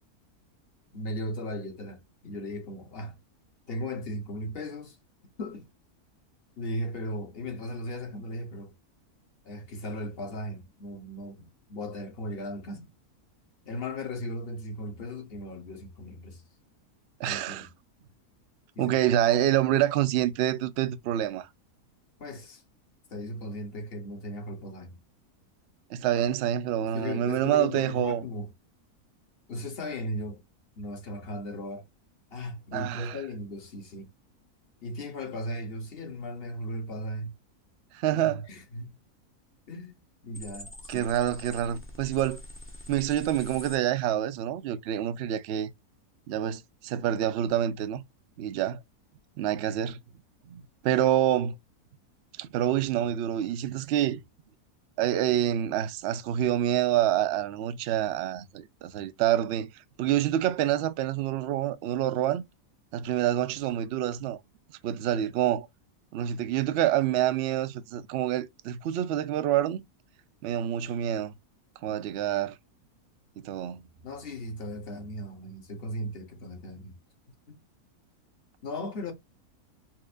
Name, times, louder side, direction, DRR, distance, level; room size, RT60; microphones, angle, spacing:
voice 1, 0.9-3.2 3.7-5.0 5.4-5.7 6.6-8.7 9.4-12.9 13.6-16.4 17.2-17.7 18.8-19.0 22.2-22.6 23.1-25.0 26.8-28.5 29.5-30.4 30.8-31.9 32.3-34.1 34.8-37.3 38.1-39.0 39.7-41.1 64.9-65.0 71.9-72.0 74.0-76.9 77.5-77.6 78.6-79.1, left 1 dB, 45° left, 1.0 m, -37 dB
voice 2, 17.2-17.7 18.8-21.5 25.9-28.2 32.7-33.2 37.9-38.4 40.9-42.4 42.9-45.7 46.3-48.0 48.4-48.8 49.4-50.0 50.5-51.5 52.4-54.2 55.0-59.7 60.0-62.4 62.9-64.4 64.8-65.7 66.1-69.8 70.4-71.3 71.8-72.6 73.4-73.8, right 11 dB, 70° right, 0.6 m, -27 dB
sound 1, 40.3-43.8, left 1 dB, 15° left, 0.4 m, -45 dB
4.3 x 2.5 x 2.4 m
omnidirectional pair, 1.6 m